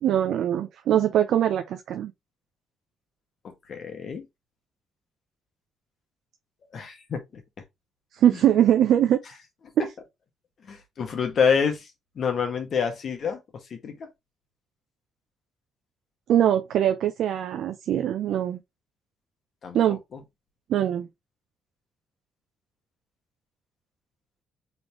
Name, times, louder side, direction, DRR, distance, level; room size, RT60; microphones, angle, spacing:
voice 1, 0.0-2.1 8.2-9.2 9.8-9.9 16.3-18.6 19.7-20.0 20.7-21.1, right 10 dB, 75° right, 0.5 m, -22 dB
voice 2, 3.4-4.2 6.7-7.4 10.7-11.9 12.2-13.4 13.7-13.9 19.6-19.8 20.1-20.2, left 6 dB, 55° left, 1.3 m, -27 dB
3.8 x 3.4 x 3.0 m
cardioid pair, 90°, 0 cm